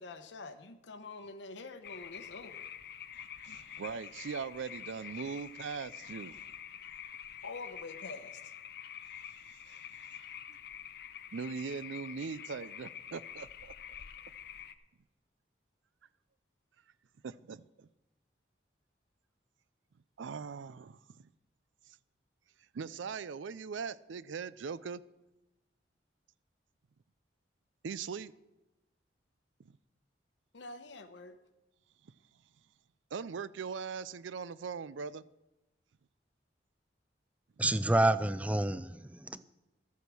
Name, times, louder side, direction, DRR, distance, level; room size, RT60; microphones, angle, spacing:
voice 1, 0.0-2.7 3.5-3.6 7.4-8.5 30.5-31.4, left 3 dB, 80° left, 0.9 m, -46 dB
sound 1, 1.8-14.7, left 9 dB, 55° left, 0.6 m, -47 dB
voice 2, 3.1-6.5 9.5-10.1 11.3-13.7 17.2-17.9 20.2-21.3 22.7-25.0 27.8-28.3 29.6-29.7 33.1-35.2, right 5 dB, 90° right, 0.4 m, -41 dB
voice 3, 37.6-39.4, right 1 dB, 10° right, 0.4 m, -28 dB
13.5 x 8.3 x 6.2 m
head